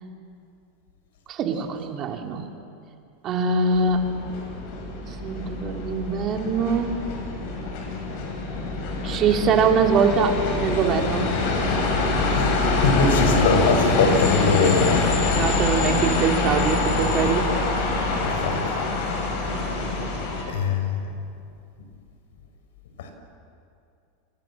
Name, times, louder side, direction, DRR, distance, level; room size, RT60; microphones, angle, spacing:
voice 1, 1.3-2.4 3.2-4.2 5.0-6.9 9.0-11.3 11.7-11.8 15.4-17.5, right 5 dB, 35° right, 3 dB, 3.1 m, -23 dB
sound 1, 3.7-20.4, left 3 dB, 60° left, 7.2 m, -25 dB
voice 2, 12.3-15.4 18.4-18.5 20.5-20.9, left 4 dB, 90° left, 6 dB, 5.2 m, -22 dB
29.0 x 26.5 x 7.5 m, 2.5 s
supercardioid pair, 150°, 0 cm